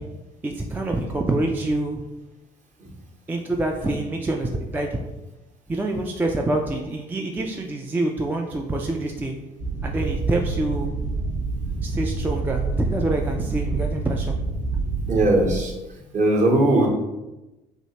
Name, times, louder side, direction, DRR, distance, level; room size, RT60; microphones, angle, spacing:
voice 1, 0.4-2.0 3.3-5.0 5.7-9.4 9.8-11.0 11.8-14.4, right 2 dB, 10° right, 1 dB, 0.3 m, -26 dB
sound 1, 9.6-15.6, right 3 dB, 85° right, 0.6 m, -27 dB
voice 2, 15.1-15.7 16.1-16.9, right 1 dB, 35° right, -1 dB, 0.9 m, -19 dB
3.0 x 2.7 x 2.8 m, 1.0 s
figure-of-eight pair, 50°, 20 cm